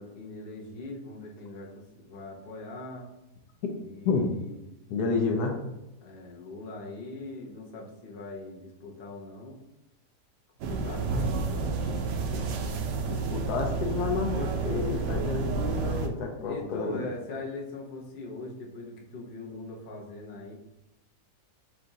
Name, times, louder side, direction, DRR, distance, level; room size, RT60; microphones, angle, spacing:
voice 1, 0.0-3.1 3.8-4.6 6.0-9.6 10.7-12.0 16.4-20.5, left 2 dB, 40° left, -2 dB, 0.9 m, -41 dB
voice 2, 4.9-5.7 13.1-17.0, left 4 dB, 75° left, 1 dB, 1.2 m, -30 dB
sound 1, 10.6-16.1, right 4 dB, 85° right, 1.2 m, -30 dB
4.6 x 2.6 x 4.0 m, 0.92 s
omnidirectional pair, 1.8 m